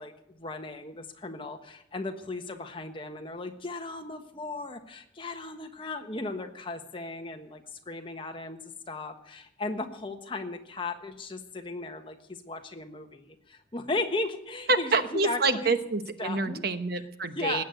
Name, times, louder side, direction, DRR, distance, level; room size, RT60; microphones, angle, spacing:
voice 1, 0.0-8.6 8.9-15.7 16.2-16.6 17.3-17.6, left 2 dB, 30° left, 5 dB, 1.4 m, -36 dB
voice 2, 14.7-17.6, right 3 dB, 55° right, 9 dB, 1.1 m, -27 dB
19.0 x 8.3 x 7.9 m, 0.76 s
head